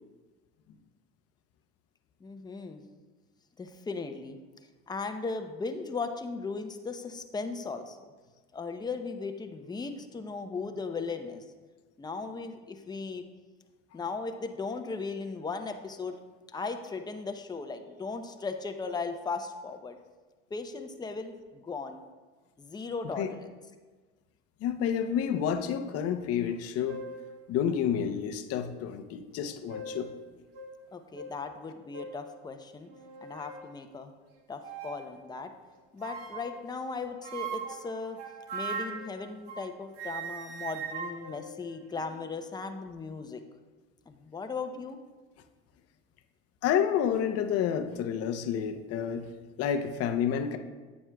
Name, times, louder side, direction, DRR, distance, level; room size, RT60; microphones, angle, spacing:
voice 1, 2.2-2.8 3.6-4.4 4.9-8.1 8.5-11.4 12.0-13.2 13.9-16.2 16.5-20.0 20.5-22.0 22.6-23.5 30.9-32.9 33.2-34.1 34.5-35.5 35.9-38.2 38.5-43.4 44.1-45.0, left 4 dB, 15° left, 6 dB, 0.6 m, -37 dB
voice 2, 24.6-27.0 27.5-30.1 46.6-49.3 49.6-50.6, left 8 dB, 55° left, 8 dB, 0.7 m, -29 dB
sound 1, 26.5-26.6 26.9-27.3 28.0-28.1 29.4-30.1 30.5-30.7 31.1-31.3 31.9-32.2 32.9-33.6 34.6-35.1 36.0-36.6 37.2-39.7 40.0-42.3, right 5 dB, 85° right, 1.2 m, -40 dB
9.1 x 7.3 x 2.3 m, 1.3 s
supercardioid pair, 90°, 29 cm